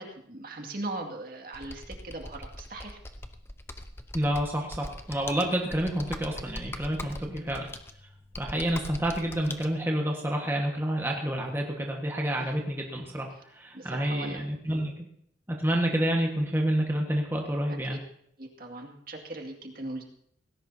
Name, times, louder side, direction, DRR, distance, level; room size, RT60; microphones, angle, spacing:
voice 1, 0.0-3.0 7.2-7.6 12.4-12.6 13.7-14.4 17.7-18.0 18.4-20.0, right 2 dB, 50° right, 2 dB, 2.2 m, -39 dB
Computer keyboard, 1.5-9.7, left 1 dB, 15° left, 0.8 m, -41 dB
voice 2, 4.1-7.7 8.4-14.9 15.5-18.0, right 1 dB, 10° right, 0 dB, 1.5 m, -29 dB
18.5 x 17.0 x 2.8 m, 0.69 s
head